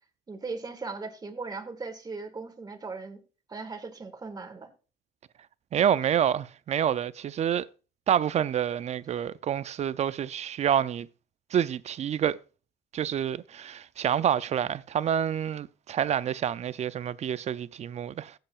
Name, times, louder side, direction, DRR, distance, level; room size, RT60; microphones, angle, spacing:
voice 1, 0.3-3.2 3.5-4.7, right 4 dB, 25° right, 1.7 m, -38 dB
voice 2, 5.7-7.7 8.1-11.1 11.5-12.4 12.9-18.3, right 9 dB, 40° right, 0.4 m, -28 dB
15.5 x 7.7 x 2.4 m
cardioid pair, 110°, 17 cm